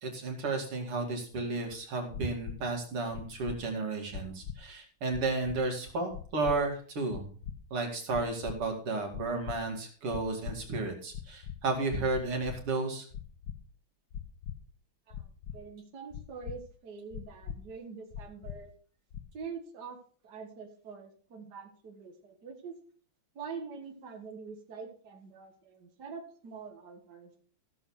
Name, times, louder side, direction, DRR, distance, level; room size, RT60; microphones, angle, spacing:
voice 1, 0.0-7.3 7.7-13.1, right 3 dB, 90° right, 2 dB, 3.4 m, -33 dB
sound 1, 2.1-2.6 3.1-3.6 4.1-4.6 5.1-5.6 6.1-6.6 7.1-7.5 8.1-8.6 9.1-9.6 10.1-10.6 11.1-11.6 12.1-12.6 13.1-13.6 14.1-14.5 15.1-15.6 16.1-16.6 17.1-17.6 18.1-18.6 19.1-19.4, left 8 dB, 60° left, 1.4 m, -40 dB
voice 2, 15.5-18.7 19.3-20.0 20.2-22.7 23.4-27.3, right 5 dB, 50° right, 4 dB, 2.1 m, -45 dB
14.5 x 7.3 x 4.7 m, 0.43 s
omnidirectional pair, 2.4 m